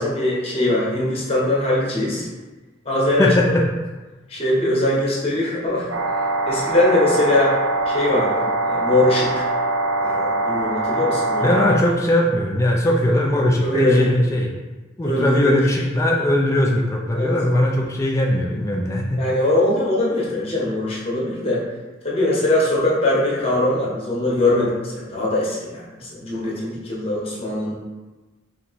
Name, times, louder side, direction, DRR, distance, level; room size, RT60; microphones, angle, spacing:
voice 1, 0.0-2.3 2.8-3.3 4.3-5.9 6.5-7.5 7.9-9.4 10.0-11.6 13.6-14.1 15.0-15.6 17.1-17.3 19.2-21.6 22.0-27.7, left 1 dB, 30° left, -5 dB, 0.9 m, -21 dB
voice 2, 3.2-3.6 11.4-14.5 15.0-19.2, left 1 dB, 15° left, -2 dB, 0.3 m, -19 dB
sound 1, 5.9-11.8, right 2 dB, 90° right, 0.6 m, -23 dB
3.4 x 2.9 x 4.0 m, 1.2 s
head